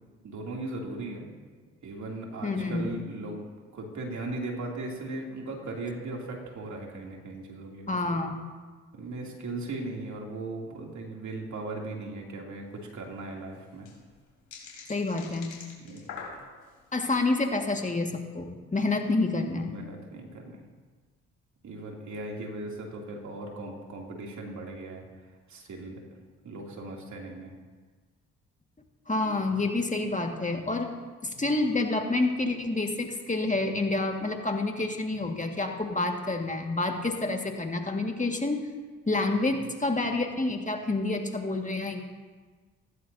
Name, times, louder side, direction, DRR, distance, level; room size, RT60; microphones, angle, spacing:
voice 1, 0.2-1.3 1.8-3.5 3.7-8.0 8.9-13.9 15.8-16.0 19.7-20.6 21.6-25.0 25.5-26.0 26.4-27.5 39.5-39.6, right 2 dB, 60° right, -1 dB, 2.9 m, -38 dB
voice 2, 2.4-2.9 7.9-8.5 14.9-15.5 16.9-19.8 29.1-30.9 31.2-38.7 39.1-42.0, left 2 dB, 25° left, 3 dB, 1.9 m, -28 dB
sound 1, 12.7-12.8 13.0-13.1 13.5-16.8 17.3-17.6, left 5 dB, 70° left, 4.2 m, -44 dB
16.0 x 15.0 x 2.8 m, 1.4 s
hypercardioid pair, 45°, 33 cm